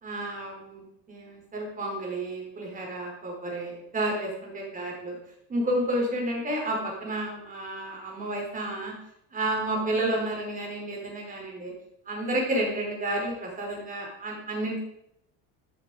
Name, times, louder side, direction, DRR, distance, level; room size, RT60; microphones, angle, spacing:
voice 1, 0.0-5.2 5.5-8.9 9.3-11.7 12.0-14.8, right 1 dB, 20° right, -1 dB, 5.0 m, -31 dB
12.5 x 12.0 x 5.2 m, 0.75 s
cardioid pair, 160°, 37 cm